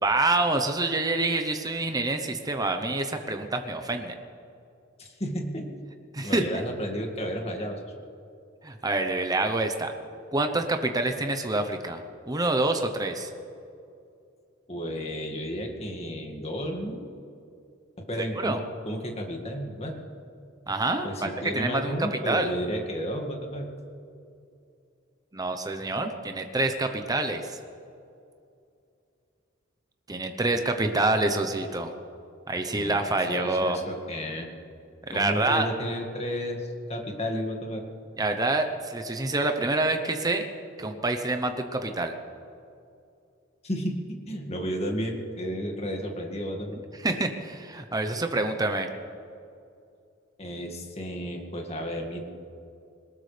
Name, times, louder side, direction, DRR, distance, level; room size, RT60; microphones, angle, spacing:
voice 1, 0.0-4.1 6.1-6.5 8.6-9.9 10.3-13.3 18.3-18.6 20.7-22.5 25.3-27.6 30.1-31.9 32.5-33.8 35.1-35.7 38.2-40.5 40.8-42.1 47.0-48.9, right 2 dB, 20° right, 5 dB, 0.8 m, -27 dB
voice 2, 5.0-5.7 6.2-7.9 14.7-17.1 18.1-18.6 18.8-20.0 21.0-23.7 32.7-33.0 33.3-34.5 35.1-37.8 43.6-44.0 44.3-46.8 50.4-52.2, equal, 30° left, 2 dB, 2.0 m, -32 dB
21.5 x 19.5 x 3.4 m, 2.5 s
head